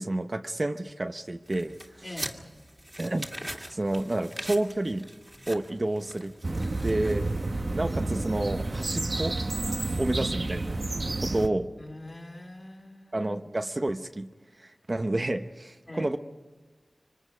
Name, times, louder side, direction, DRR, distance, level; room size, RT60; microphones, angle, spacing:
voice 1, 0.0-1.8 3.0-3.3 3.7-5.1 5.5-6.3 6.8-7.3 7.7-9.4 10.0-10.8 11.2-11.7 13.1-14.3 14.6-16.2, right 2 dB, 40° right, 7 dB, 0.9 m, -30 dB
sound 1, 1.5-7.7, equal, 15° right, 2.2 m, -42 dB
voice 2, 2.0-2.3 11.8-13.2 15.9-16.1, left 1 dB, 35° left, 0 dB, 3.8 m, -43 dB
sound 2, 6.4-11.5, right 2 dB, 60° right, 1.2 m, -30 dB
26.0 x 24.0 x 5.1 m, 1.3 s
cardioid pair, 45°, 0 cm